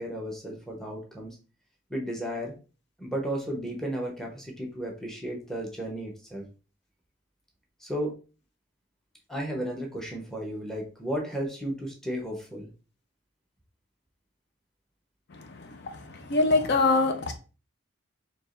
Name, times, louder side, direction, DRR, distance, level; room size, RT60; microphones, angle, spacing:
voice 1, 0.0-1.4 1.9-2.5 3.0-6.4 7.8-8.2 9.3-12.7, equal, ahead, -1 dB, 0.9 m, -34 dB
voice 2, 16.3-17.3, left 3 dB, 55° left, 6 dB, 0.5 m, -22 dB
4.7 x 2.8 x 2.5 m, 0.34 s
head